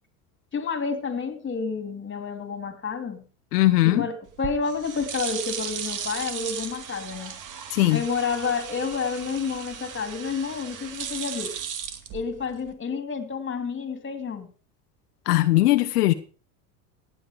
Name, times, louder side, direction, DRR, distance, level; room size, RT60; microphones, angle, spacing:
voice 1, 0.5-3.2 3.8-7.4 7.9-11.5 12.1-14.5, left 5 dB, 25° left, 3.0 m, -30 dB
voice 2, 3.5-4.0 7.7-8.0 15.3-16.1, left 17 dB, 80° left, 1.0 m, -19 dB
sound 1, 4.3-12.7, right 8 dB, 40° right, 2.2 m, -36 dB
17.0 x 9.0 x 5.0 m
hypercardioid pair, 90°, 46 cm